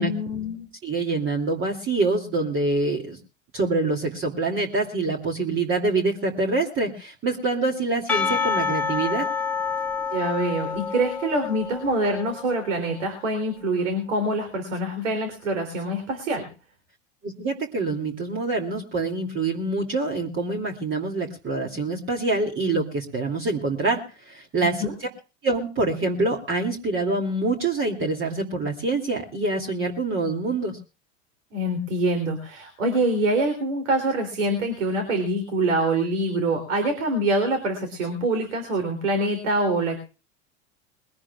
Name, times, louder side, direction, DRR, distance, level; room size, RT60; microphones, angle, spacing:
voice 1, 0.0-0.7 10.1-16.4 24.6-24.9 31.5-40.0, right 1 dB, 80° right, 6 dB, 3.3 m, -25 dB
voice 2, 0.8-3.2 3.5-9.3 17.2-25.1 25.4-30.8, right 3 dB, 35° right, 1 dB, 2.7 m, -25 dB
Percussion / Church bell, 8.1-12.6, left 5 dB, 5° left, 1.6 m, -28 dB
22.0 x 17.5 x 2.4 m, 0.33 s
hypercardioid pair, 85°, 36 cm